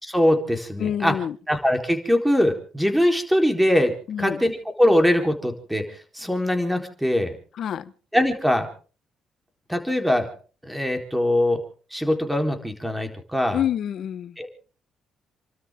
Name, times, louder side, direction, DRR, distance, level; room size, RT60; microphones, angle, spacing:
voice 1, 0.0-1.1 1.5-7.3 8.1-8.7 9.7-10.3 10.6-11.6 11.9-13.6 14.4-14.5, left 1 dB, 5° right, 4.1 m, -22 dB
voice 2, 0.8-1.4 4.1-4.4 7.6-7.9 13.5-14.3, left 9 dB, 65° left, 1.2 m, -27 dB
29.5 x 13.0 x 3.8 m
cardioid pair, 90°, 0 cm